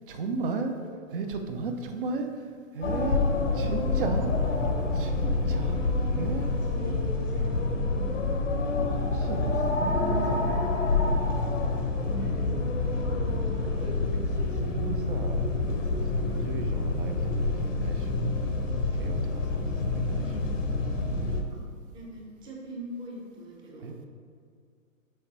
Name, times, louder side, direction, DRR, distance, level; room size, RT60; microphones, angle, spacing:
voice 1, 0.1-0.8 1.1-3.3 3.5-4.4 4.9-5.8 6.1-6.5 8.8-10.6 14.1-18.2 18.9-20.5 23.8-24.0, right 4 dB, 40° right, 6 dB, 0.7 m, -36 dB
sound 1, 2.8-21.4, left 3 dB, 65° left, 1.0 m, -27 dB
voice 2, 5.5-6.0 6.7-7.7 8.2-8.8 12.0-14.0 21.5-21.6 21.9-23.9, right 1 dB, 10° right, -2 dB, 0.8 m, -44 dB
sound 2, 6.2-21.2, left 3 dB, 5° left, 0.4 m, -48 dB
6.5 x 4.5 x 4.2 m, 2.3 s
figure-of-eight pair, 125°, 40 cm